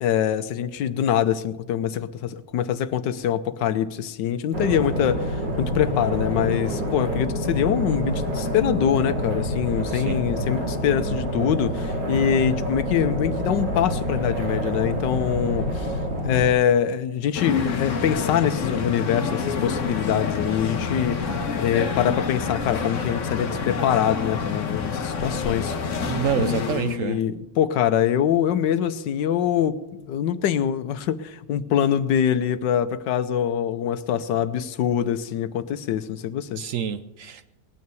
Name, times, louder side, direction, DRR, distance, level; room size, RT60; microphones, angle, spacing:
voice 1, 0.0-15.9 16.2-21.2 21.6-36.6, left 9 dB, 75° left, 1.4 m, -24 dB
sound 1, 4.5-16.5, equal, 80° right, 3.0 m, -27 dB
sound 2, 17.3-27.0, left 5 dB, 45° left, 1.4 m, -28 dB
voice 2, 26.0-27.2 36.6-37.5, right 8 dB, 65° right, 0.8 m, -27 dB
19.0 x 9.4 x 6.9 m
omnidirectional pair, 1.9 m